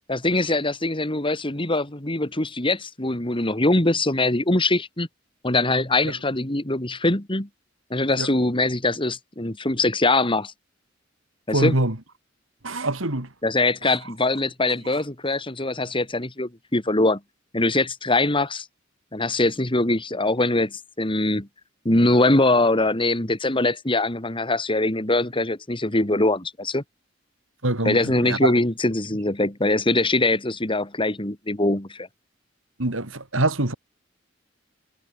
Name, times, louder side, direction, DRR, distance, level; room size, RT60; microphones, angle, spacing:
voice 1, 0.1-5.1 5.4-7.5 7.9-10.5 11.5-11.7 13.4-17.2 17.5-18.6 19.1-21.5 21.8-26.8 27.8-32.1, left 2 dB, 25° left, 2.8 m, -22 dB
voice 2, 11.5-12.0 12.6-13.3 13.8-14.0 27.6-28.5 32.8-33.7, right 2 dB, 85° right, 3.3 m, -24 dB
head